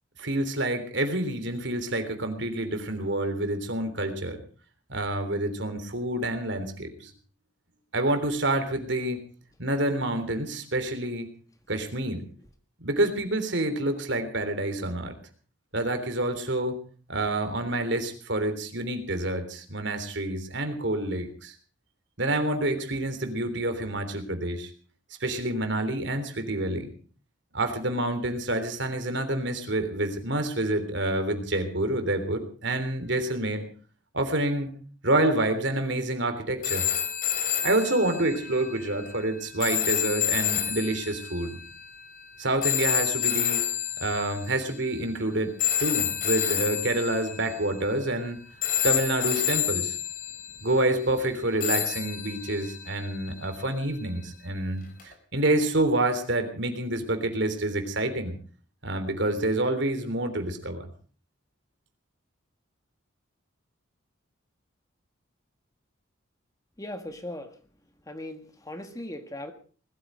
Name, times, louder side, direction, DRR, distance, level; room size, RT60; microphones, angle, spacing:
voice 1, 0.2-4.4 4.9-7.1 7.9-9.2 9.6-11.3 11.7-12.2 12.8-15.1 15.7-16.8 17.1-21.5 22.2-24.7 25.2-26.9 27.5-33.6 34.1-34.7 35.0-36.8 37.6-41.6 42.4-43.6 44.0-45.5 45.8-48.4 48.8-50.0 50.6-58.3 58.8-60.9, right 1 dB, 60° right, 8 dB, 3.4 m, -28 dB
sound 1, 36.6-44.8 45.6-48.3 48.6-50.7 51.6-53.8 55.0-55.1, left 10 dB, 40° left, 3.9 m, -29 dB
voice 2, 66.8-67.5 68.1-69.5, left 1 dB, 15° left, 7 dB, 1.5 m, -38 dB
20.5 x 14.0 x 5.0 m, 0.41 s
head